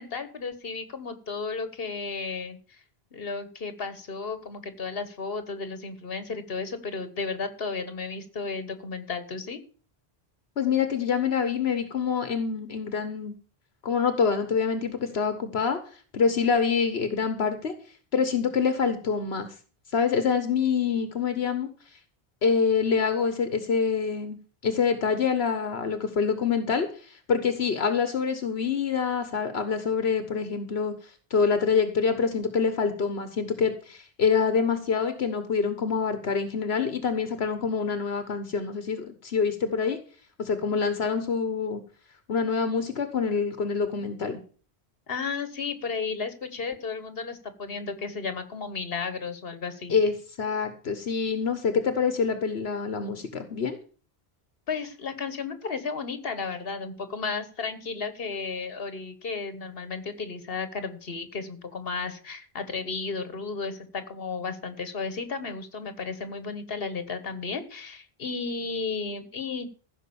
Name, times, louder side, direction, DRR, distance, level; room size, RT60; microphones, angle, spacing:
voice 1, 0.0-2.8 3.1-9.6 45.1-49.9 54.7-69.7, left 4 dB, 65° left, 11 dB, 1.7 m, -33 dB
voice 2, 10.6-13.3 13.8-15.8 16.1-17.7 18.1-19.5 19.9-21.7 22.4-24.4 24.6-30.9 31.3-40.0 40.4-41.8 42.3-44.4 49.9-53.8, left 6 dB, 85° left, 9 dB, 1.4 m, -26 dB
15.0 x 6.1 x 7.1 m, 0.40 s
omnidirectional pair, 1.0 m